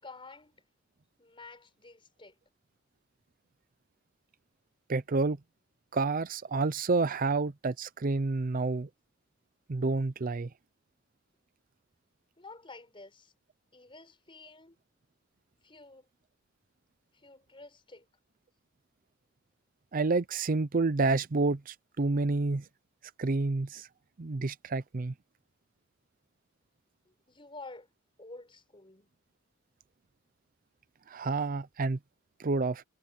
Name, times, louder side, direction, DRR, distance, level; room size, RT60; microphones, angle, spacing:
voice 1, 0.0-0.5 1.2-2.3 12.4-13.3 13.7-14.8 15.6-16.1 17.1-18.1 27.0-27.9 28.2-29.1, left 3 dB, 25° left, 4.6 m, -50 dB
voice 2, 4.9-5.4 5.9-8.9 9.7-10.5 19.9-22.6 23.2-23.9 24.2-25.1 31.1-32.0 32.4-32.8, right 3 dB, 45° right, 0.6 m, -29 dB
head